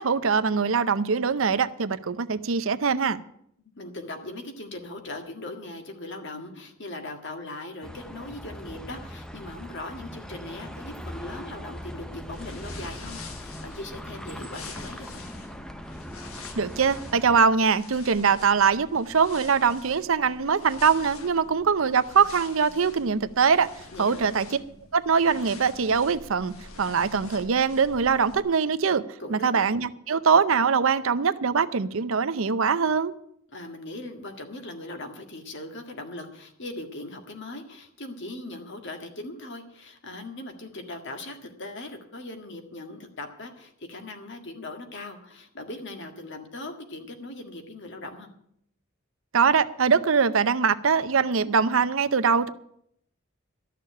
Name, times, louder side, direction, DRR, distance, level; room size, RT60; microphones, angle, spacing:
voice 1, 0.0-3.2 16.6-23.7 24.0-24.5 24.9-29.0 29.3-33.1 49.3-52.5, right 6 dB, 70° right, 0.6 m, -22 dB
voice 2, 3.8-15.2 23.9-24.4 29.2-29.6 33.5-48.3, left 2 dB, 55° left, 1.8 m, -39 dB
sound 1, 7.8-17.4, equal, 5° left, 0.6 m, -40 dB
sound 2, 12.3-28.4, left 3 dB, 85° left, 1.5 m, -46 dB
13.0 x 6.7 x 9.8 m
head